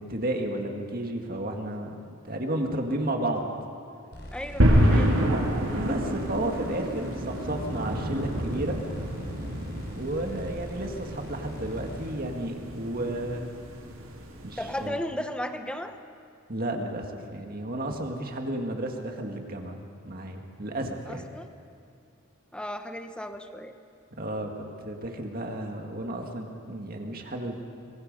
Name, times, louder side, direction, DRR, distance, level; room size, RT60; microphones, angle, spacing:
voice 1, 0.0-2.0 2.2-3.5 5.8-8.8 9.9-13.5 14.4-15.0 16.5-21.2 24.2-27.6, right 1 dB, 45° right, 3 dB, 2.0 m, -32 dB
sound 1, 4.1-12.1, equal, 55° left, 5.6 m, -42 dB
voice 2, 4.3-5.1 14.6-15.9 21.1-21.5 22.5-23.7, equal, 5° left, 7 dB, 1.0 m, -35 dB
sound 2, 4.6-14.9, equal, 70° right, 3.3 m, -28 dB
25.5 x 22.0 x 5.5 m, 2.4 s
head